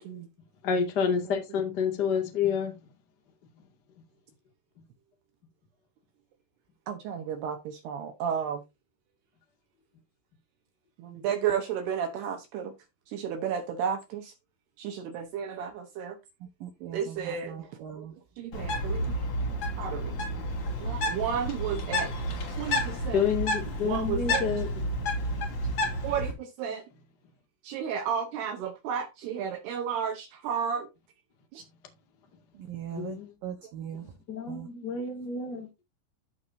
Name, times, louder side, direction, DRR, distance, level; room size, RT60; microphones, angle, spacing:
voice 1, 0.6-2.7 23.1-24.7 32.9-33.3 34.0-35.7, left 6 dB, 80° left, 0.9 m, -29 dB
voice 2, 6.9-8.6 11.0-12.7 13.1-14.3 14.8-16.2 16.9-17.6 18.4-19.1 19.8-20.2 20.8-22.1 22.6-23.3 23.8-24.6 26.0-26.8 27.6-30.9 31.5-31.6, right 8 dB, 70° right, 2.6 m, -32 dB
voice 3, 16.6-18.2 32.6-34.0 34.5-34.7, right 10 dB, 90° right, 1.9 m, -40 dB
Bird, 18.5-26.3, equal, 40° left, 3.2 m, -30 dB
14.0 x 5.9 x 2.6 m
omnidirectional pair, 5.7 m